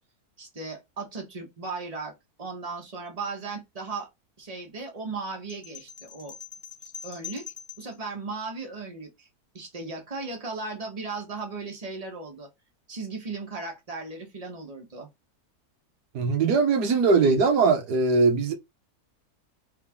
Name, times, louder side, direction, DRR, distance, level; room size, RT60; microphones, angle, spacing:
voice 1, 0.4-4.1 4.4-6.3 7.0-7.5 7.8-9.3 9.5-12.5 12.9-15.1, right 4 dB, 25° right, 1.4 m, -36 dB
sound 1, 5.5-8.0, left 7 dB, 30° left, 0.6 m, -43 dB
voice 2, 16.1-18.5, right 4 dB, 85° right, 1.5 m, -21 dB
3.7 x 3.4 x 3.6 m
omnidirectional pair, 1.7 m